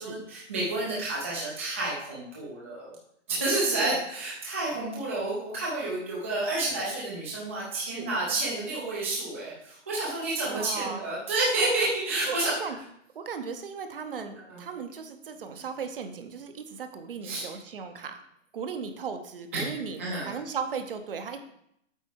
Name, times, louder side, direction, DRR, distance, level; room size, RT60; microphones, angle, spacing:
voice 1, 0.0-2.9 3.3-12.5 14.5-14.6 17.2-17.4 19.5-19.6 20.0-20.3, right 2 dB, 10° right, -6 dB, 0.5 m, -30 dB
voice 2, 10.5-11.0 12.3-12.8 13.1-18.1 18.5-20.0 20.3-21.4, right 6 dB, 45° right, 7 dB, 0.8 m, -36 dB
8.1 x 4.4 x 4.5 m, 0.74 s
hypercardioid pair, 170°, 37 cm